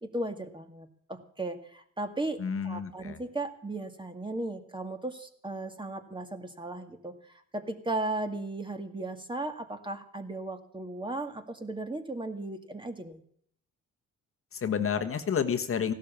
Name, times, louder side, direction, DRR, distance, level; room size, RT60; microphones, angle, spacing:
voice 1, 0.0-13.2, right 2 dB, 15° right, 6 dB, 2.0 m, -36 dB
voice 2, 2.4-3.2 14.5-15.9, left 7 dB, 45° left, 7 dB, 1.4 m, -30 dB
16.0 x 12.0 x 7.2 m, 0.64 s
cardioid pair, 90°, 30 cm